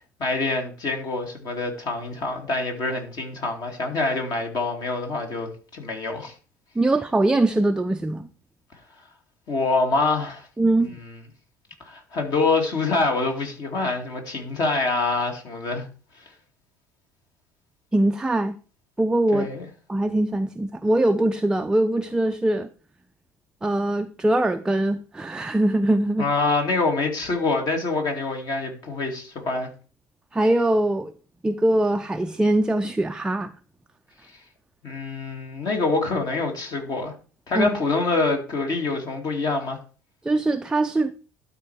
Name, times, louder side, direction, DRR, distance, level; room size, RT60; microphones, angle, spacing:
voice 1, 0.0-6.3 9.5-10.5 10.9-11.0 11.8-15.9 19.3-19.7 26.2-29.7 34.8-37.1 37.5-39.8, left 3 dB, 45° left, 2.4 m, -25 dB
voice 2, 6.8-8.3 10.6-11.0 17.9-18.6 19.0-19.5 19.9-22.7 23.6-26.3 30.3-31.1 31.4-33.5 37.5-37.7 40.2-41.1, right 1 dB, 10° right, 0.5 m, -22 dB
12.0 x 4.4 x 4.7 m
figure-of-eight pair, 60°, 9 cm